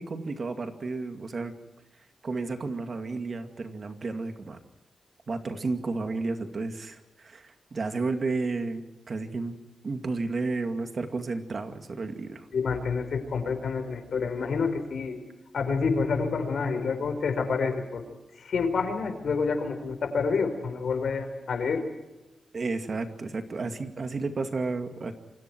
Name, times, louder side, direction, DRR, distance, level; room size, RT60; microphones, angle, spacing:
voice 1, 0.0-1.5 2.2-4.6 5.3-9.6 9.8-12.5 22.5-25.1, right 3 dB, 40° right, 7 dB, 2.3 m, -32 dB
voice 2, 12.5-15.2 15.5-18.0 18.3-21.8, left 5 dB, 65° left, 8 dB, 4.6 m, -28 dB
28.0 x 25.5 x 4.6 m, 0.99 s
wide cardioid pair, 150°, 0 cm